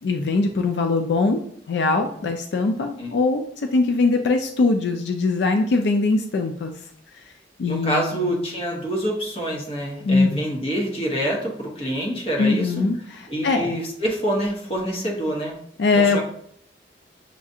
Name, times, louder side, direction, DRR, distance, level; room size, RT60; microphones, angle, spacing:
voice 1, 0.0-6.7 7.6-8.3 10.0-10.4 12.4-13.8 15.8-16.2, left 3 dB, 80° left, 5 dB, 0.4 m, -22 dB
voice 2, 7.7-12.9 13.3-15.6 15.9-16.2, equal, 35° left, -1 dB, 1.1 m, -26 dB
6.8 x 2.4 x 2.7 m, 0.66 s
head